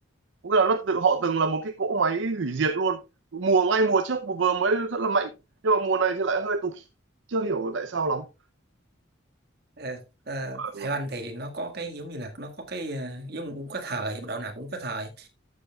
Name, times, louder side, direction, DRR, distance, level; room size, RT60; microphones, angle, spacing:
voice 1, 0.4-3.0 3.3-5.3 5.6-6.8 7.3-8.3 10.6-10.9, right 4 dB, 75° right, 0.6 m, -24 dB
voice 2, 10.3-15.3, right 2 dB, 55° right, 1.8 m, -34 dB
13.0 x 7.2 x 2.3 m
head